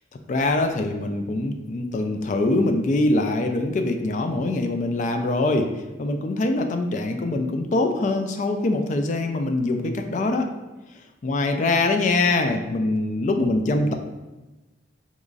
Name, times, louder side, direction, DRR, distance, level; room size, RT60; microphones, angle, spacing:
voice 1, 0.3-5.7 6.0-10.5 11.2-13.9, left 2 dB, 45° left, 6 dB, 0.3 m, -23 dB
3.7 x 3.0 x 2.5 m, 1.1 s
head